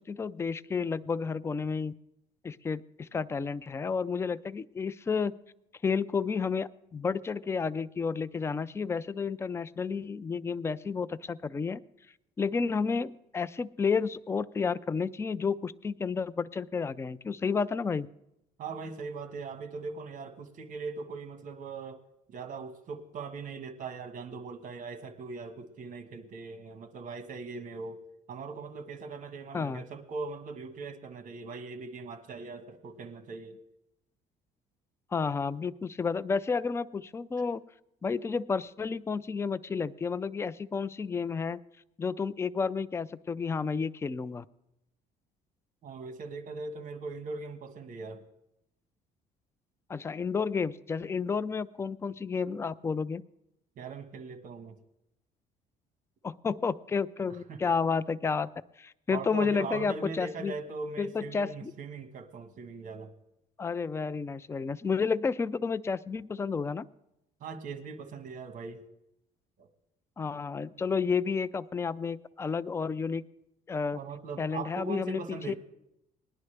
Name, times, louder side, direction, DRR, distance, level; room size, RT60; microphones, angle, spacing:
voice 1, 0.1-1.9 2.4-5.3 5.8-11.8 12.4-18.1 29.5-29.8 35.1-37.6 38.0-41.6 42.0-44.5 49.9-53.2 56.2-58.5 58.8-60.5 61.0-61.7 63.6-66.9 70.2-73.2 73.7-74.0 74.4-75.5, left 5 dB, 15° left, 16 dB, 0.3 m, -31 dB
voice 2, 18.6-22.0 22.3-28.0 28.3-33.6 45.8-48.2 53.8-54.7 57.3-57.6 59.1-63.1 67.4-68.8 69.6-69.7 73.9-75.5, right 4 dB, 50° right, 9 dB, 1.3 m, -40 dB
19.5 x 10.5 x 3.3 m, 0.85 s
cardioid pair, 110°, 17 cm